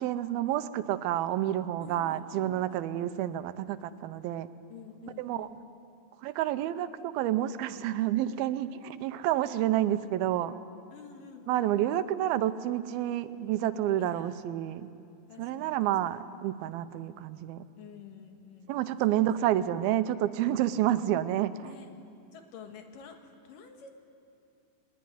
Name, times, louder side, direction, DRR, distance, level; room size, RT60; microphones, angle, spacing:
voice 1, 0.0-4.5 5.2-5.5 6.2-10.5 11.5-14.9 15.4-17.6 18.7-21.7, right 12 dB, 85° right, 12 dB, 2.7 m, -29 dB
voice 2, 1.8-3.0 4.7-5.6 10.9-11.7 14.0-14.4 15.3-16.3 17.7-19.6 21.6-21.9 22.3-23.9, left 7 dB, 65° left, 4 dB, 3.3 m, -50 dB
23.0 x 19.5 x 9.7 m, 2.5 s
omnidirectional pair, 4.2 m